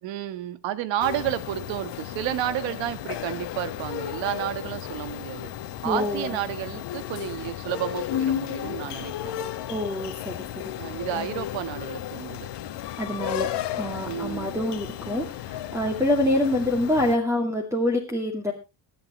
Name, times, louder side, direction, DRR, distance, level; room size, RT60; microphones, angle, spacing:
voice 1, 0.0-5.5 5.8-9.3 10.8-12.5 14.0-14.6, right 12 dB, 80° right, 13 dB, 1.5 m, -31 dB
sound 1, 1.0-17.2, left 11 dB, 65° left, 1.5 m, -33 dB
voice 2, 5.8-6.3 9.7-10.4 10.6-10.7 13.0-13.5 13.8-18.5, left 1 dB, 5° right, 1 dB, 2.3 m, -26 dB
23.0 x 8.8 x 3.1 m, 0.27 s
cardioid pair, 110°, 44 cm